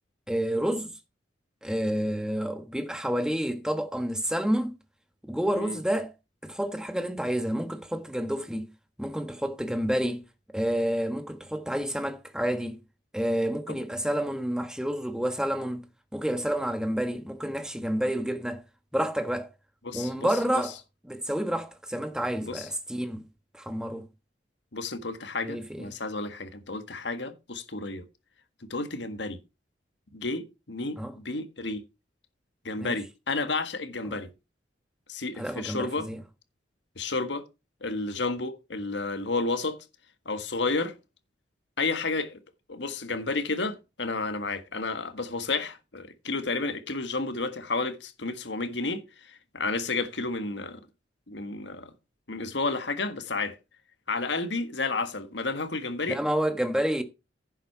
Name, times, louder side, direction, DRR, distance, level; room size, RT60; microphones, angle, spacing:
voice 1, 0.3-0.9 1.6-4.7 5.2-6.1 6.4-8.7 9.0-10.2 10.5-12.8 13.1-15.9 16.1-18.6 18.9-19.5 19.9-20.7 21.0-23.2 23.5-24.0 25.4-25.9 31.0-31.1 32.8-33.0 34.0-34.2 35.4-36.2 56.1-57.0, equal, 5° right, 1.2 m, -29 dB
voice 2, 19.8-20.4 20.6-20.7 22.4-22.7 24.7-28.0 28.7-29.4 30.1-31.8 32.6-34.3 35.1-36.1 36.9-37.4 37.8-39.8 40.2-40.9 41.8-42.4 42.7-50.8 51.3-51.9 52.3-53.6 54.1-56.2, left 3 dB, 70° left, 1.6 m, -31 dB
10.5 x 7.7 x 4.6 m
head